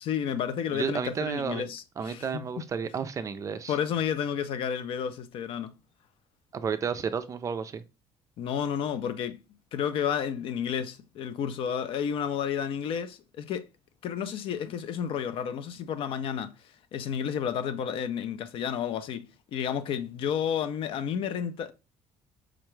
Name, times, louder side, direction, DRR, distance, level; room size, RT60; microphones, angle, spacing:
voice 1, 0.0-2.4 3.7-5.7 8.4-9.4 9.7-13.7 14.0-16.5 16.9-21.7, left 8 dB, 60° left, 0.4 m, -31 dB
voice 2, 0.7-1.7 2.0-3.7 6.5-7.8, right 6 dB, 30° right, 0.3 m, -32 dB
4.9 x 2.2 x 3.0 m
cardioid pair, 125°, 11 cm